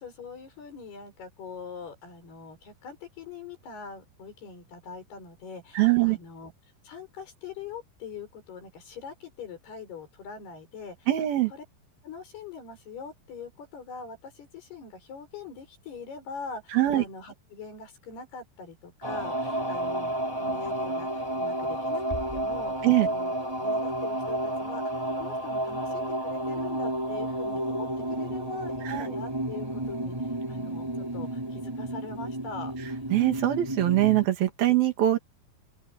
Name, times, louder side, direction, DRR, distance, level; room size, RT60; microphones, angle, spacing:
voice 1, 0.0-6.5 6.8-11.1 11.5-11.6 12.0-32.7, left 5 dB, 85° left, 8.1 m, -43 dB
voice 2, 5.8-6.2 11.1-11.5 16.7-17.0 22.8-23.1 28.9-29.1 33.1-35.2, right 15 dB, 70° right, 4.0 m, -22 dB
sound 1, 19.0-34.3, right 1 dB, 5° right, 6.0 m, -31 dB
Bass drum, 22.1-23.5, equal, 10° left, 3.6 m, -42 dB
open air
omnidirectional pair, 4.5 m